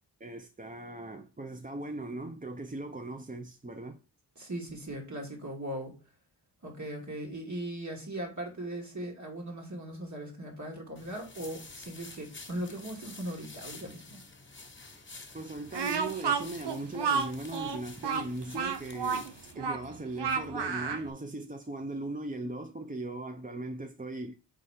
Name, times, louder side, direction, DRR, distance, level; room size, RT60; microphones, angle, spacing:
voice 1, 0.2-4.0 15.3-24.3, right 2 dB, 20° right, 0.6 m, -39 dB
voice 2, 4.4-5.9 6.6-14.2, right 1 dB, 45° right, 2.4 m, -39 dB
sound 1, 11.0-19.5, left 3 dB, 30° left, 1.3 m, -49 dB
Speech, 15.7-21.1, right 6 dB, 75° right, 0.8 m, -31 dB
4.8 x 4.2 x 5.0 m
wide cardioid pair, 60°, 41 cm